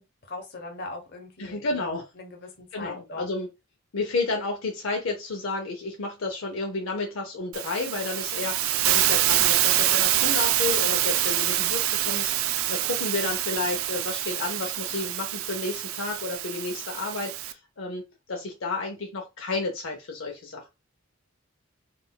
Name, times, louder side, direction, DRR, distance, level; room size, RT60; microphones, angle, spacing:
voice 1, 0.2-3.2, left 2 dB, 50° left, 0.9 m, -40 dB
voice 2, 1.4-2.1 2.7-3.5 3.9-20.7, left 3 dB, 75° left, 0.6 m, -31 dB
Hiss, 7.5-17.5, right 13 dB, 85° right, 0.3 m, -26 dB
3.6 x 2.4 x 2.2 m
head